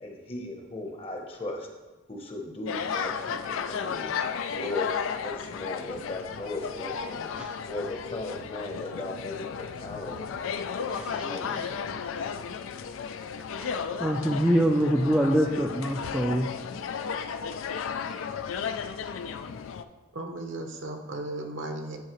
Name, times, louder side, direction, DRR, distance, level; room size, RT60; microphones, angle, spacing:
voice 1, 0.0-1.7 2.1-4.1 4.5-7.3 7.6-10.5 11.3-11.9, left 2 dB, 30° left, 2 dB, 0.8 m, -37 dB
sound 1, 2.7-19.8, left 6 dB, 80° left, 0.3 m, -34 dB
voice 2, 10.9-11.7 13.5-16.5, equal, 5° right, -1 dB, 0.3 m, -26 dB
voice 3, 20.1-22.0, right 2 dB, 70° right, 4 dB, 0.9 m, -35 dB
9.4 x 4.7 x 3.1 m, 1.1 s
head